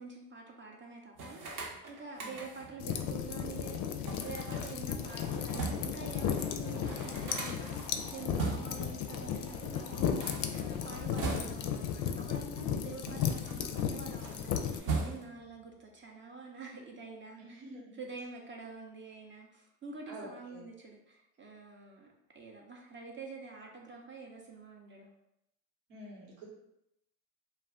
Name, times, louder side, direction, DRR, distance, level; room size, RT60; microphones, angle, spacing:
voice 1, 0.0-17.6 17.9-25.1, right 4 dB, 30° right, 0 dB, 0.6 m, -47 dB
sound 1, 1.2-2.8 4.1-6.0 6.4-6.5 6.7-8.9 10.0-11.8 12.6-13.9 14.2-15.5, right 3 dB, 55° right, 0.8 m, -40 dB
sound 2, 2.8-14.8, left 8 dB, 55° left, 0.4 m, -35 dB
sound 3, 5.0-11.0, left 2 dB, 15° left, 0.7 m, -52 dB
voice 2, 17.4-17.9 20.1-20.6 25.9-26.5, equal, 85° right, -4 dB, 1.2 m, -48 dB
2.3 x 2.2 x 3.5 m, 0.82 s
supercardioid pair, 75°, 39 cm